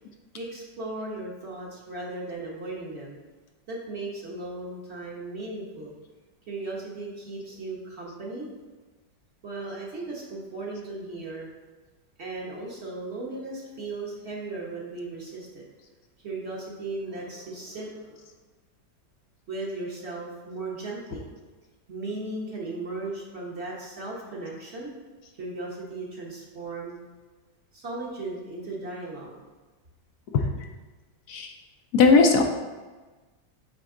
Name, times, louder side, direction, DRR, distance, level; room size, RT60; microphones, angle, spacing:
voice 1, 0.3-3.2 3.7-5.9 6.5-8.5 9.4-11.5 12.2-15.6 16.2-18.2 19.5-21.2 21.9-24.9 25.4-27.0 27.7-29.4, right 2 dB, 45° right, -3 dB, 1.2 m, -36 dB
voice 2, 31.9-32.4, left 4 dB, 70° left, 3 dB, 1.1 m, -17 dB
7.8 x 3.9 x 3.7 m, 1.3 s
omnidirectional pair, 1.8 m